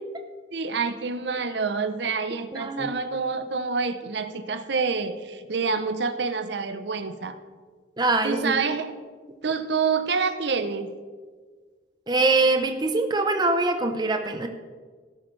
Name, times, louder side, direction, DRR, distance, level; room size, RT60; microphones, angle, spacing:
voice 1, 0.5-7.4 8.2-8.9 9.4-10.9, right 5 dB, 70° right, 9 dB, 0.8 m, -27 dB
voice 2, 2.5-2.9 8.0-8.5 12.1-14.5, right 3 dB, 25° right, 5 dB, 0.8 m, -23 dB
18.0 x 8.2 x 3.3 m, 1.5 s
head